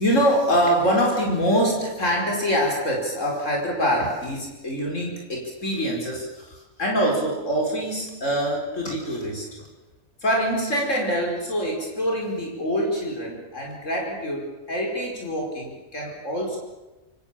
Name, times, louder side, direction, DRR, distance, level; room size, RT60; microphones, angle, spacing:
voice 1, 0.0-9.6 10.2-16.6, equal, 85° left, 0 dB, 5.3 m, -25 dB
27.0 x 24.0 x 7.4 m, 1.1 s
omnidirectional pair, 1.3 m